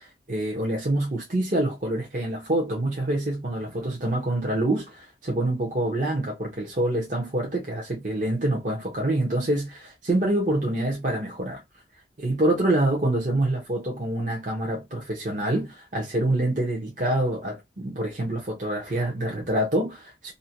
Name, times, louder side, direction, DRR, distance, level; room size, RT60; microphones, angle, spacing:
voice 1, 0.0-11.6 12.2-20.3, right 1 dB, 45° right, 0.7 m, -26 dB
2.7 x 2.1 x 2.8 m
head